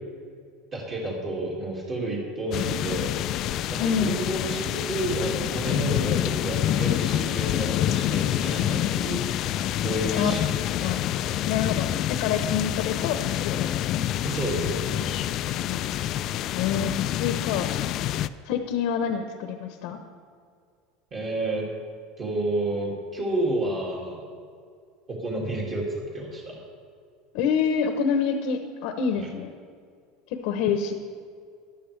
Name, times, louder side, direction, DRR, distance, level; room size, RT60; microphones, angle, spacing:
voice 1, 0.7-3.1 3.7-9.5 9.8-10.4 10.8-11.0 14.2-15.1 21.1-21.6 22.2-24.2 25.1-26.6 29.2-29.3, right 1 dB, 30° right, -4 dB, 2.3 m, -30 dB
sound 1, 2.5-18.3, left 12 dB, 50° left, 0.3 m, -27 dB
voice 2, 3.8-4.2 10.1-10.3 10.8-11.0 11.4-14.0 15.0-15.8 16.5-17.7 18.4-20.0 27.3-29.5 30.3-30.9, left 7 dB, 70° left, 7 dB, 0.9 m, -27 dB
14.0 x 11.0 x 3.3 m, 2.2 s
supercardioid pair, 130°, 0 cm